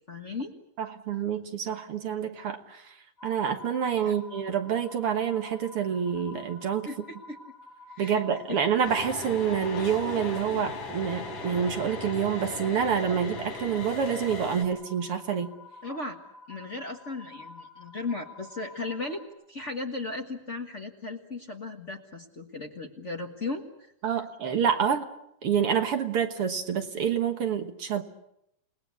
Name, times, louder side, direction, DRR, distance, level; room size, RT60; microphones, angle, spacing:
voice 1, 0.1-0.5 4.0-4.1 6.8-7.4 7.9-8.6 15.8-16.2 16.5-23.9, left 3 dB, 40° left, 2 dB, 1.1 m, -36 dB
voice 2, 0.8-2.9 3.2-6.9 8.0-15.5 24.0-25.1 25.4-28.0, right 7 dB, 55° right, 7 dB, 1.9 m, -27 dB
sound 1, 3.2-19.3, left 2 dB, 15° left, 6.3 m, -49 dB
sound 2, 8.8-14.6, left 2 dB, 80° left, 6.3 m, -37 dB
29.0 x 19.0 x 8.4 m, 0.80 s
omnidirectional pair, 3.7 m